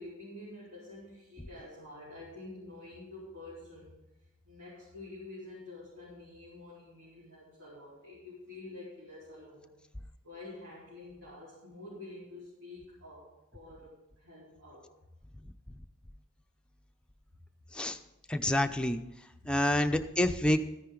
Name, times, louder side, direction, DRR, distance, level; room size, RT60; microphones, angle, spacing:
voice 1, 0.0-4.0 4.4-9.7 10.2-14.9 19.4-19.9, left 2 dB, 65° right, -10 dB, 4.4 m, -48 dB
voice 2, 18.3-19.0 19.5-20.6, left 1 dB, 5° left, 6 dB, 0.6 m, -27 dB
13.5 x 10.5 x 3.9 m, 0.94 s
head